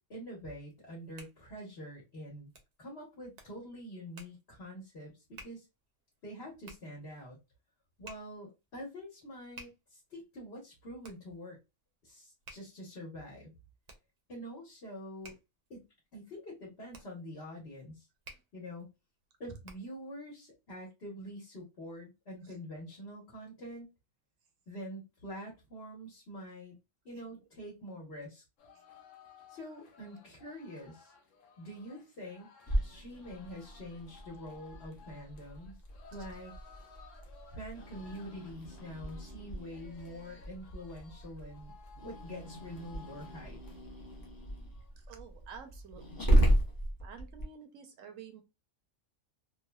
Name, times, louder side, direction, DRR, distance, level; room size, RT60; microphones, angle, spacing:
voice 1, 0.1-2.5 2.8-5.6 6.2-7.4 8.0-11.6 12.0-13.5 14.3-15.3 15.7-15.9 16.1-18.1 18.5-18.9 19.4-23.9 24.7-26.7 27.0-28.4 29.5-31.1 31.6-32.5 32.8-35.8 36.1-36.5 37.5-41.7 42.0-43.6, equal, 55° left, -3 dB, 1.3 m, -45 dB
Hands, 0.7-20.1, right 2 dB, 60° right, 0.8 m, -57 dB
sound 1, 28.6-43.8 44.1-44.2 44.5-44.9, left 6 dB, 80° left, 1.0 m, -58 dB
Growling, 32.7-47.4, right 1 dB, 20° left, 0.6 m, -34 dB
voice 2, 45.1-46.4 47.0-48.4, right 6 dB, 85° right, 6 dB, 1.1 m, -50 dB
3.2 x 2.1 x 2.3 m, 0.24 s
omnidirectional pair, 1.3 m